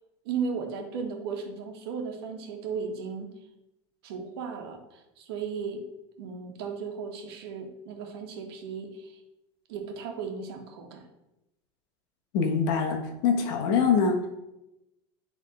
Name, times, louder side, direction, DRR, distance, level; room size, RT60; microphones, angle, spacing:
voice 1, 0.2-3.3 4.0-5.8 6.2-9.2 9.7-11.0, right 5 dB, 80° right, 3 dB, 1.4 m, -35 dB
voice 2, 12.3-14.3, left 5 dB, 65° left, 3 dB, 1.3 m, -24 dB
10.0 x 3.6 x 3.8 m, 0.91 s
supercardioid pair, 155°, 13 cm